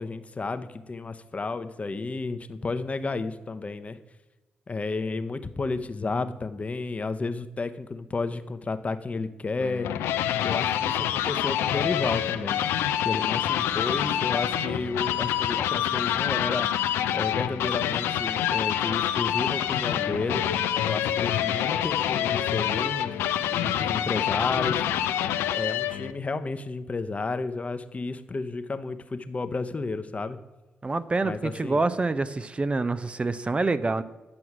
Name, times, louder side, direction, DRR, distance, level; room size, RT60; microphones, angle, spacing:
voice 1, 0.0-4.0 4.7-9.9 10.4-12.6 13.0-16.7 17.1-20.4 20.8-23.2 23.5-24.8 25.5-30.4 31.2-31.8, left 3 dB, 35° left, 11 dB, 0.8 m, -32 dB
sound 1, 9.6-26.1, left 11 dB, 90° left, 0.5 m, -26 dB
voice 2, 30.8-34.0, right 3 dB, 30° right, 13 dB, 0.5 m, -26 dB
9.7 x 6.1 x 5.9 m, 1.2 s
supercardioid pair, 55°, 4 cm